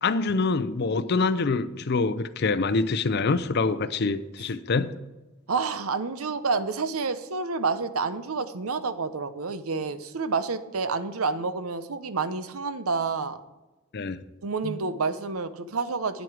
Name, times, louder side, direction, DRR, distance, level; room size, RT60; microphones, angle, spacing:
voice 1, 0.0-4.9 13.9-14.2 14.6-14.7, left 3 dB, 50° left, 0.5 m, -25 dB
voice 2, 5.5-13.4 14.4-16.2, right 4 dB, 90° right, 0.8 m, -29 dB
9.2 x 7.8 x 4.9 m
head